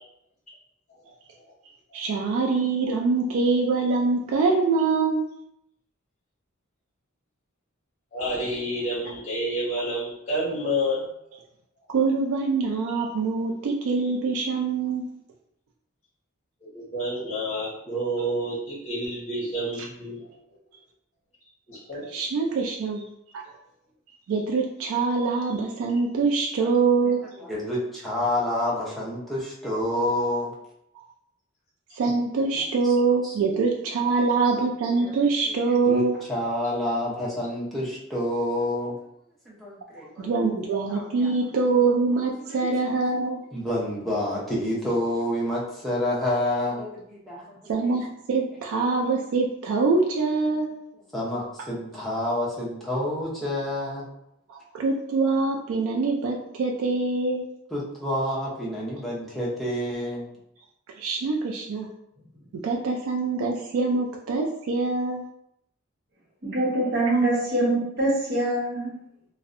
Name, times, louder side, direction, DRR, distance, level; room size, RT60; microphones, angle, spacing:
voice 1, 1.9-5.3 11.9-15.1 18.2-18.3 22.1-23.0 23.3-23.4 24.3-27.2 32.0-36.2 40.2-43.4 47.7-50.7 54.5-57.5 61.0-61.9 62.5-65.2, right 4 dB, 75° right, 0 dB, 0.3 m, -24 dB
voice 2, 8.1-11.0 16.7-20.2 21.7-22.0, equal, 35° left, -5 dB, 0.9 m, -29 dB
voice 3, 27.4-30.5 32.8-32.9 33.2-33.4 34.8-35.1 35.4-35.6 35.8-36.0 36.3-38.9 39.5-40.5 40.9-41.3 42.4-42.7 43.5-47.6 47.8-47.9 51.1-54.0 57.7-60.3, left 1 dB, ahead, -7 dB, 0.6 m, -28 dB
voice 4, 66.4-68.9, right 2 dB, 50° right, -5 dB, 0.9 m, -24 dB
2.6 x 2.1 x 2.4 m, 0.77 s
head